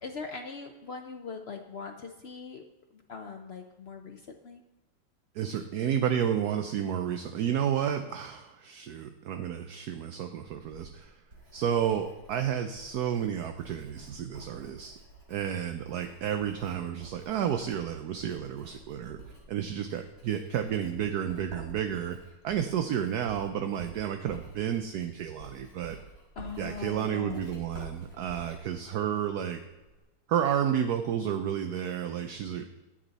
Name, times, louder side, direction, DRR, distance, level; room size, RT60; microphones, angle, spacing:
voice 1, 0.0-2.6 3.1-4.6 26.4-27.4, left 5 dB, 90° left, 4 dB, 0.5 m, -41 dB
voice 2, 5.3-11.2 11.5-14.9 15.3-19.2 19.5-22.2 22.4-26.0 26.6-29.6 30.3-32.7, right 9 dB, 65° right, 7 dB, 1.1 m, -31 dB
Writing, 10.5-30.0, right 2 dB, 50° right, 3.7 m, -51 dB
11.5 x 9.1 x 4.1 m, 1.1 s
omnidirectional pair, 2.0 m